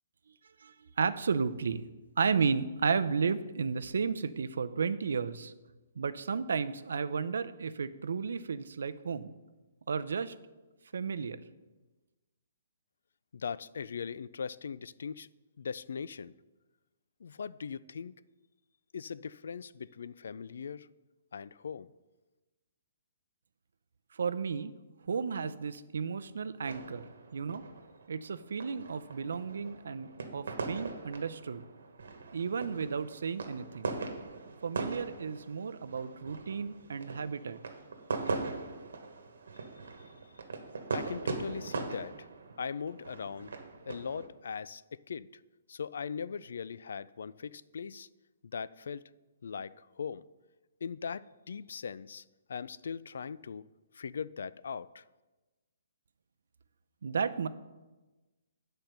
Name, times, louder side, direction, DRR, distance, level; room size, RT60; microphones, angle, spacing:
voice 1, 0.6-1.8 2.2-5.5 6.0-9.3 9.9-10.3 10.9-11.4 24.1-24.7 25.1-27.6 28.1-31.6 32.3-34.0 34.6-37.6 57.0-57.5, right 5 dB, 70° right, 0.5 m, -33 dB
voice 2, 13.3-15.3 15.6-16.3 17.2-18.1 18.9-20.9 21.3-21.9 40.9-42.3 42.6-43.5 43.9-45.4 45.7-48.1 48.4-49.0 49.4-50.2 50.8-52.2 52.5-53.7 53.9-55.0, left 6 dB, 65° left, 0.3 m, -40 dB
sound 1, 26.6-44.3, right 4 dB, 90° right, 1.3 m, -40 dB
9.4 x 4.4 x 6.6 m
hypercardioid pair, 180°, 0 cm